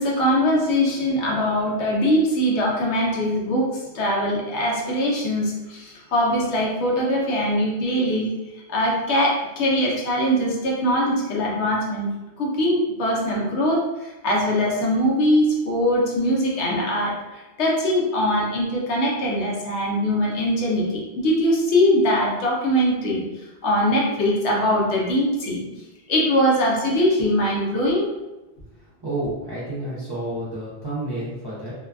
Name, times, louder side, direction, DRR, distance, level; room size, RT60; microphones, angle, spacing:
voice 1, 0.0-8.3 8.7-12.1 12.4-23.2 23.6-25.6 26.1-28.1, equal, 80° left, -3 dB, 1.0 m, -22 dB
voice 2, 29.0-31.7, right 1 dB, 30° right, -9 dB, 0.5 m, -30 dB
2.6 x 2.3 x 2.4 m, 1.1 s
omnidirectional pair, 1.1 m